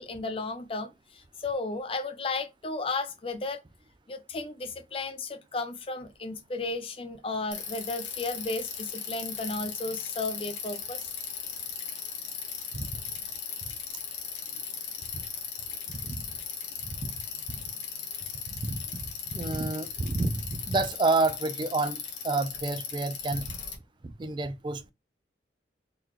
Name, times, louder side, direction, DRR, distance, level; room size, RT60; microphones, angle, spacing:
voice 1, 0.0-3.6 4.1-11.1, left 3 dB, 30° left, 0.5 m, -34 dB
Bicycle, 7.5-23.7, left 7 dB, 90° left, 1.1 m, -38 dB
voice 2, 15.9-16.2 18.5-18.8 19.3-22.0 22.2-23.5 24.0-24.9, right 3 dB, 25° right, 0.3 m, -29 dB
3.9 x 2.9 x 3.1 m
head